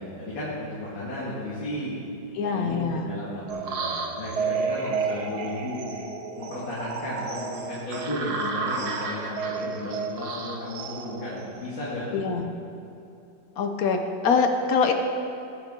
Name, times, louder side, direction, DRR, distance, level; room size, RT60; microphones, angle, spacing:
voice 1, 0.0-2.0 2.4-5.8 6.4-12.2, left 1 dB, 75° left, -9 dB, 2.8 m, -34 dB
voice 2, 2.3-3.0 12.1-12.5 13.6-14.9, left 5 dB, 60° left, 5 dB, 1.1 m, -24 dB
sound 1, 3.5-11.9, right 5 dB, 60° right, 1.3 m, -31 dB
19.0 x 6.8 x 3.7 m, 2.9 s
omnidirectional pair, 2.1 m